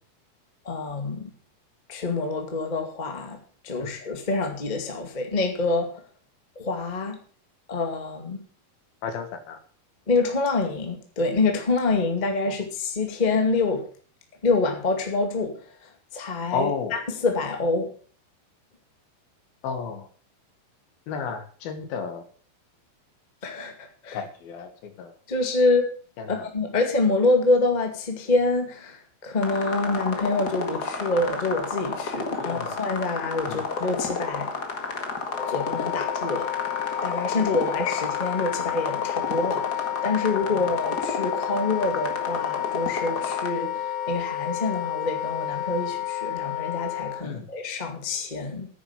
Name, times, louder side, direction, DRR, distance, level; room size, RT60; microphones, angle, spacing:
voice 1, 0.6-1.3 1.9-3.4 3.6-5.9 6.5-7.2 7.7-8.4 10.1-13.8 14.4-15.6 16.1-17.9 23.4-24.2 25.3-25.9 26.3-34.5 35.5-36.5 37.0-48.7, left 3 dB, 20° left, 1.3 m, -26 dB
voice 2, 9.0-9.6 12.5-12.6 16.5-17.0 19.6-20.1 21.1-22.2 24.1-25.2 26.2-26.5 32.4-32.7 33.5-33.6 40.5-40.6 47.2-47.5, left 5 dB, 75° left, 3.4 m, -32 dB
sound 1, 29.4-43.5, left 4 dB, 40° left, 1.6 m, -32 dB
Wind instrument woodwind instrument, 35.3-47.2, left 13 dB, 60° left, 1.6 m, -31 dB
10.0 x 9.8 x 7.2 m
omnidirectional pair, 4.3 m